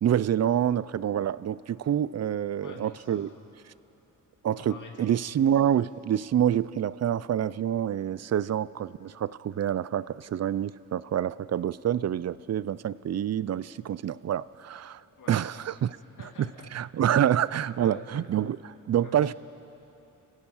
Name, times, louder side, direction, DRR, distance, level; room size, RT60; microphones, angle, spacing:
voice 1, 0.0-3.3 4.4-15.0 15.3-15.9 16.7-18.6 18.9-19.3, right 10 dB, 50° right, 19 dB, 0.5 m, -27 dB
voice 2, 2.6-3.5 4.6-5.1 15.2-15.6 16.2-16.7 17.2-17.4 17.8-18.3 19.0-19.3, left 4 dB, 65° left, 1 dB, 2.0 m, -46 dB
29.5 x 16.5 x 5.7 m, 2.9 s
cardioid pair, 80°, 34 cm